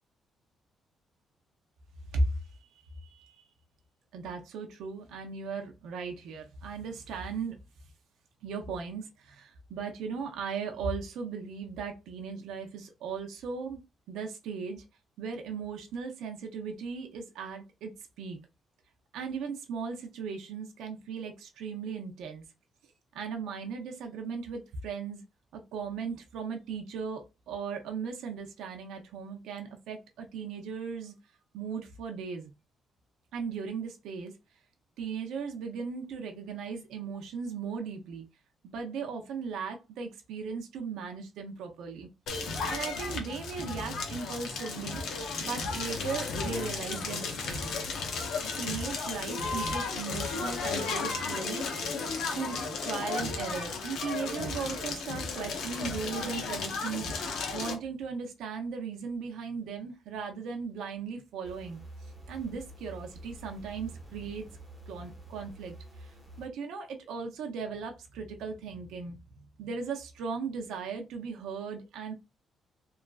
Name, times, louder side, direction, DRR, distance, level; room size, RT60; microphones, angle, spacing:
voice 1, 3.1-3.4 4.1-7.6 8.4-13.8 14.1-14.8 15.2-17.9 18.2-18.4 19.1-22.4 23.1-25.2 25.5-31.1 31.5-32.5 33.3-34.4 35.0-38.3 38.6-42.1 42.4-45.0 45.4-47.6 48.6-51.6 52.3-57.1 57.5-64.5 64.9-69.2 69.6-72.1, right 5 dB, 90° right, 0.5 m, -37 dB
Crackle, 42.3-57.7, left 4 dB, 75° left, 0.7 m, -34 dB
sound 1, 45.4-50.5 51.2-52.6, left 3 dB, 30° left, 0.6 m, -48 dB
sound 2, 61.4-66.5, right 1 dB, 5° right, 1.0 m, -48 dB
2.9 x 2.4 x 2.3 m
cardioid pair, 135°, 0 cm